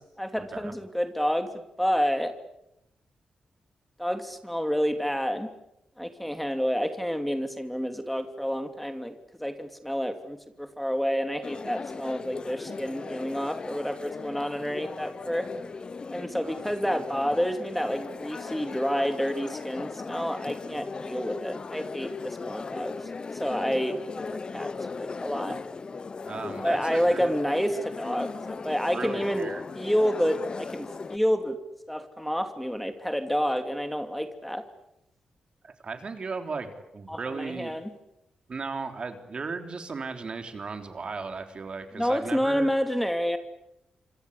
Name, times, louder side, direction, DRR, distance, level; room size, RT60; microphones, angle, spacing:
voice 1, 0.2-2.3 4.0-5.5 6.0-9.1 9.4-15.5 16.1-22.9 23.3-24.0 24.3-24.7 25.0-25.6 26.6-29.5 29.7-31.6 31.9-34.6 37.1-37.9 41.9-43.4, equal, 5° left, 7 dB, 2.8 m, -29 dB
sound 1, 11.4-31.2, left 4 dB, 40° left, 1.0 m, -38 dB
voice 2, 16.4-16.7 26.3-27.4 28.9-29.6 35.6-37.7 38.5-42.7, right 4 dB, 50° right, 6 dB, 3.7 m, -36 dB
26.5 x 26.0 x 8.4 m, 0.84 s
cardioid pair, 75°, 2 cm